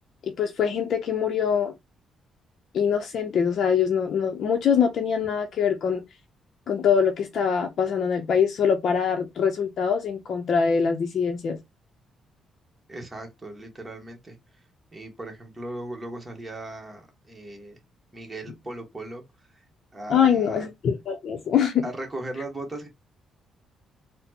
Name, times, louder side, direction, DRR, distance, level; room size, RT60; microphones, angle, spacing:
voice 1, 0.2-1.7 2.7-6.0 6.7-11.6 20.1-21.8, left 7 dB, 60° left, 0.6 m, -23 dB
voice 2, 12.9-14.4 14.9-17.8 18.1-19.2 19.5-19.6 19.9-20.7 21.8-22.9, right 1 dB, 15° right, 1.0 m, -37 dB
4.1 x 2.0 x 2.8 m
cardioid pair, 90°, 0 cm